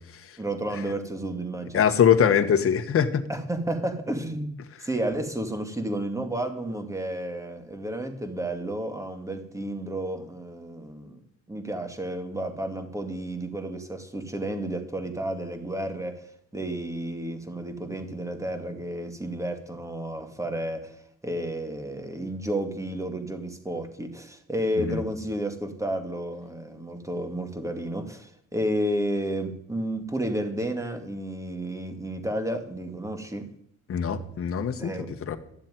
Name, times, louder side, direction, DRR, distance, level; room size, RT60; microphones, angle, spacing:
voice 1, 0.4-1.8 3.3-11.2 11.5-16.3 16.5-33.5 34.8-35.2, right 1 dB, 10° right, 7 dB, 2.2 m, -31 dB
voice 2, 1.7-3.2 24.8-25.0 33.9-35.4, left 8 dB, 50° left, 6 dB, 1.3 m, -23 dB
13.0 x 7.5 x 9.2 m, 0.70 s
cardioid pair, 90°, 30 cm